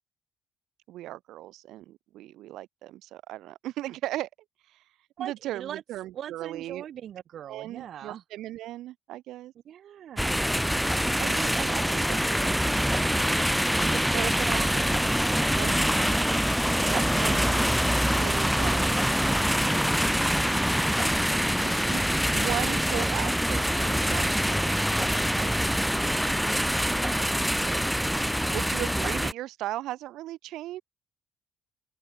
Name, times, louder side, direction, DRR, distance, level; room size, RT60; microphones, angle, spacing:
voice 1, 0.9-4.3 4.7-4.8 5.2-6.8 7.5-9.5 14.1-14.8 15.5-15.9 16.9-17.6 18.2-21.1 21.6-22.0 22.3-28.0 28.3-30.8, right 15 dB, 75° right, 2.5 m, -38 dB
voice 2, 5.2-5.8 6.1-8.2 9.6-10.4 11.2-13.2 13.8-16.2 16.8-16.9 22.5-22.9 24.2-24.7 28.7-28.9, right 10 dB, 50° right, 1.7 m, -40 dB
sound 1, 10.2-29.3, equal, ahead, 0.5 m, -25 dB
open air
cardioid pair, 145°, 0 cm